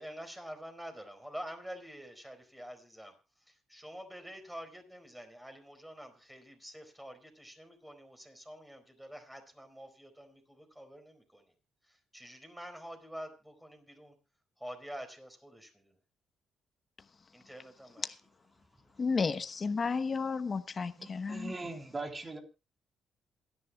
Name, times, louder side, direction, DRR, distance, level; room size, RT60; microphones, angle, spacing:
voice 1, 0.0-3.1 3.5-11.5 11.9-14.1 14.6-16.0 17.3-18.1, equal, 5° right, 4.4 m, -47 dB
voice 2, 19.0-21.5, left 4 dB, 40° left, 1.1 m, -32 dB
voice 3, 21.0-22.4, right 2 dB, 25° right, 3.4 m, -40 dB
27.5 x 10.5 x 2.3 m
cardioid pair, 90°, 0 cm